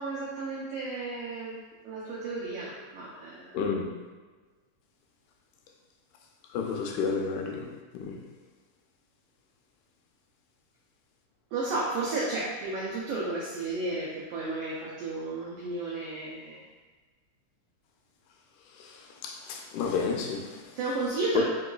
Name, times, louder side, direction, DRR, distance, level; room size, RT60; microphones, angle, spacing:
voice 1, 0.0-1.5 1.8-3.6 11.5-16.6 20.8-21.4, right 3 dB, 90° right, -5 dB, 1.4 m, -33 dB
voice 2, 3.5-3.9 6.5-7.7 7.9-8.2 18.8-20.6, left 5 dB, 90° left, 2 dB, 2.1 m, -31 dB
4.7 x 3.8 x 2.3 m, 1.3 s
omnidirectional pair, 3.5 m